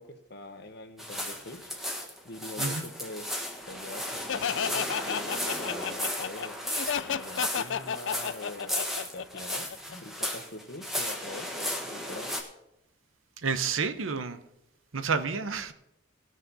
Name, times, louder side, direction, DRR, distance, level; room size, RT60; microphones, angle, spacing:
voice 1, 0.0-1.7 2.2-3.3 3.7-6.6 7.0-12.3, left 1 dB, 55° left, 7 dB, 1.2 m, -44 dB
sound 1, 1.0-12.4, left 1 dB, ahead, 1.3 m, -35 dB
voice 2, 2.6-2.9 13.4-14.4 14.9-15.7, right 5 dB, 85° right, 11 dB, 0.8 m, -30 dB
Laughter, 4.3-9.9, left 7 dB, 70° left, 0.5 m, -32 dB
19.0 x 6.5 x 4.1 m, 0.84 s
head